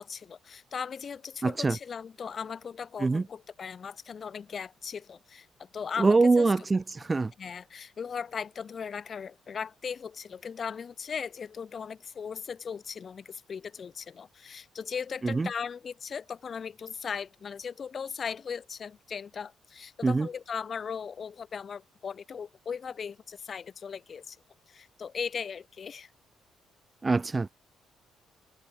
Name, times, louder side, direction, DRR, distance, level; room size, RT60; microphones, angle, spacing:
voice 1, 0.0-6.5 7.4-24.4 24.7-26.1, left 6 dB, 45° left, 1.6 m, -38 dB
voice 2, 1.4-1.8 3.0-3.2 6.0-7.3 15.2-15.5 20.0-20.3 27.0-27.5, right 3 dB, 25° right, 0.4 m, -24 dB
cardioid pair, 90°, 0 cm